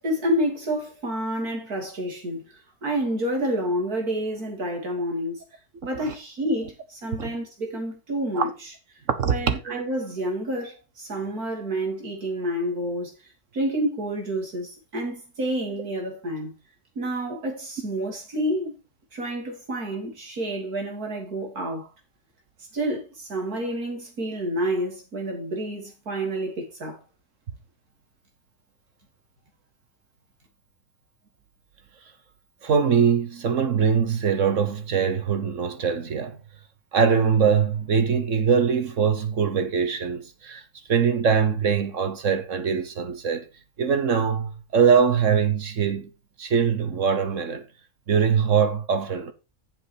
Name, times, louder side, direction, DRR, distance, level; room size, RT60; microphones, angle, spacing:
voice 1, 0.0-5.4 5.8-8.7 9.2-13.1 13.5-16.5 17.0-18.8 19.1-21.9 22.7-27.0, right 1 dB, 75° right, 3.6 m, -29 dB
voice 2, 9.1-9.8 32.6-36.4 36.9-40.6 40.9-43.5 43.8-46.1 46.4-47.6 48.1-49.3, right 6 dB, 55° right, 1.4 m, -22 dB
8.5 x 7.3 x 4.9 m
omnidirectional pair, 1.6 m